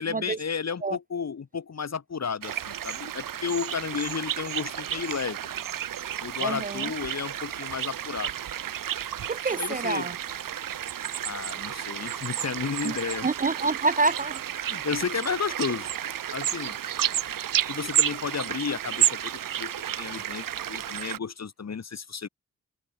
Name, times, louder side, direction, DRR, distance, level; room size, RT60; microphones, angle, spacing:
voice 1, 0.0-5.4 6.2-8.3 9.5-10.1 11.2-13.3 14.7-15.9 16.3-16.8 17.7-22.3, left 6 dB, 50° left, 2.1 m, -32 dB
sound 1, 2.4-21.2, right 10 dB, 75° right, 1.8 m, -31 dB
voice 2, 6.4-6.9 9.3-10.2 12.8-12.9 13.2-14.4 14.7-14.9, right 3 dB, 25° right, 0.5 m, -27 dB
supercardioid pair, 40°, 33 cm